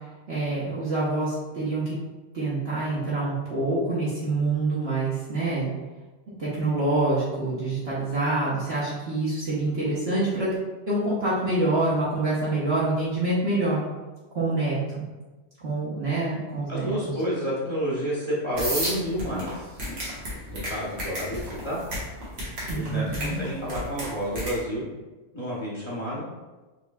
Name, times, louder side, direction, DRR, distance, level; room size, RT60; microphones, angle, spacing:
voice 1, 0.3-1.8 2.3-5.7 6.4-10.5 10.9-13.8 14.3-15.0 15.6-17.0 22.7-23.4, right 2 dB, 60° right, -9 dB, 1.2 m, -26 dB
voice 2, 16.7-20.0 20.5-21.8 22.7-24.8 25.3-26.2, equal, 25° left, -6 dB, 0.9 m, -30 dB
sound 1, 18.6-24.6, equal, 90° right, 1.7 m, -32 dB
5.6 x 3.0 x 2.3 m, 1.2 s
omnidirectional pair, 1.2 m